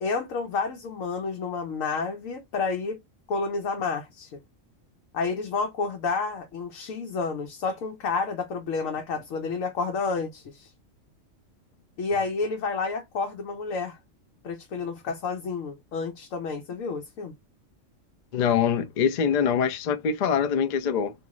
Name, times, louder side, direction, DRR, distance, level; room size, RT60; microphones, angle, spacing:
voice 1, 0.0-3.0 3.3-4.4 5.1-10.7 12.0-14.0 14.4-17.3, left 4 dB, 85° left, 1.1 m, -30 dB
voice 2, 18.3-21.1, left 7 dB, 65° left, 0.4 m, -24 dB
3.0 x 2.7 x 3.6 m
omnidirectional pair, 1.3 m